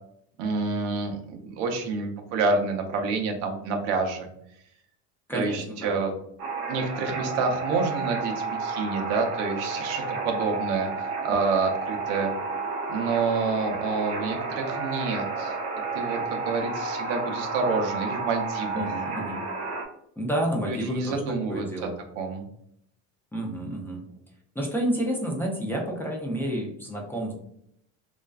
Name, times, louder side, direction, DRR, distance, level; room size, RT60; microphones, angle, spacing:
voice 1, 0.4-4.3 5.3-6.1 6.7-10.9 11.2-12.3 12.9-15.6 15.9-18.8 20.7-21.9 22.2-22.4, right 4 dB, 85° right, 3 dB, 0.6 m, -28 dB
voice 2, 5.3-6.0 18.7-19.4 20.2-22.0 23.3-24.0 24.6-27.3, right 1 dB, 5° left, -2 dB, 0.4 m, -30 dB
sound 1, 6.4-19.9, right 4 dB, 45° right, 0.6 m, -31 dB
2.4 x 2.2 x 2.2 m, 0.72 s
supercardioid pair, 110°, 36 cm